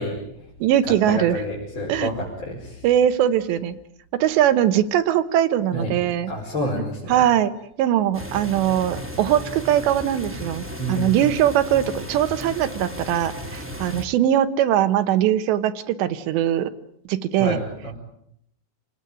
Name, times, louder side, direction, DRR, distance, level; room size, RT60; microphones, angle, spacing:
voice 1, 0.0-0.5 0.9-2.9 5.7-6.0 6.3-7.3 10.8-11.2 17.4-17.9, left 1 dB, 25° left, -3 dB, 5.4 m, -29 dB
voice 2, 0.6-1.4 1.9-2.1 2.8-3.8 4.2-6.3 7.1-7.5 7.8-16.7 17.1-17.6, right 11 dB, 90° right, 11 dB, 3.6 m, -21 dB
sound 1, 8.1-14.0, left 1 dB, 5° right, 1.7 m, -35 dB
29.0 x 18.0 x 9.1 m, 0.72 s
omnidirectional pair, 4.9 m